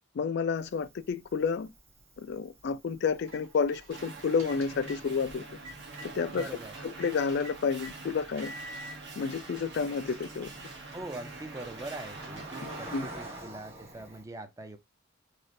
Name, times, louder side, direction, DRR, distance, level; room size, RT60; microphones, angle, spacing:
voice 1, 0.2-1.7 2.3-5.4 6.2-6.5 6.8-8.5 9.2-10.5 12.6-13.1, left 5 dB, 55° left, 0.3 m, -30 dB
Cricket, 0.5-14.2, right 2 dB, 30° right, 1.1 m, -50 dB
sound 1, 3.0-6.5 7.0-7.9 8.4-9.0 9.6-9.7 10.1-12.9, equal, 80° right, 1.0 m, -49 dB
sound 2, 3.9-13.4, right 3 dB, 55° right, 0.7 m, -45 dB
voice 2, 6.3-6.8 10.9-14.8, right 2 dB, 15° right, 0.4 m, -42 dB
3.1 x 2.4 x 2.5 m
head